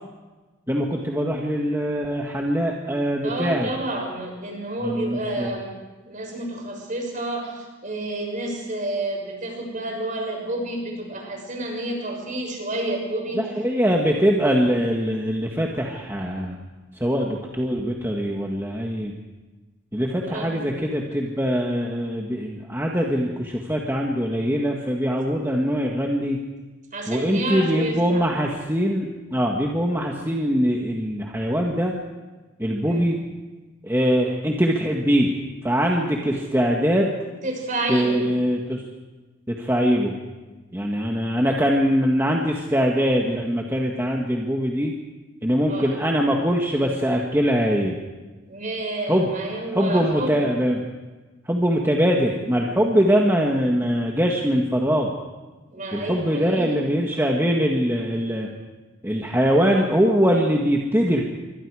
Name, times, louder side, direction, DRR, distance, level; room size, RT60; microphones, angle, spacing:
voice 1, 0.7-3.7 4.8-5.5 13.3-16.6 16.9-19.1 19.9-26.4 27.1-29.1 29.3-31.9 32.6-33.2 33.8-35.3 35.6-37.2 37.9-38.8 39.5-40.1 40.7-44.9 45.4-48.0 49.1-49.3 49.7-50.8 51.5-55.1 55.9-58.5 59.0-61.2, equal, 10° right, -1 dB, 1.8 m, -22 dB
voice 2, 3.2-5.8 6.0-13.4 20.2-20.5 26.9-28.2 32.9-33.1 37.4-38.2 45.7-46.0 48.5-50.4 55.7-56.8, right 1 dB, 40° right, 2 dB, 6.6 m, -30 dB
27.0 x 24.0 x 5.0 m, 1.2 s
head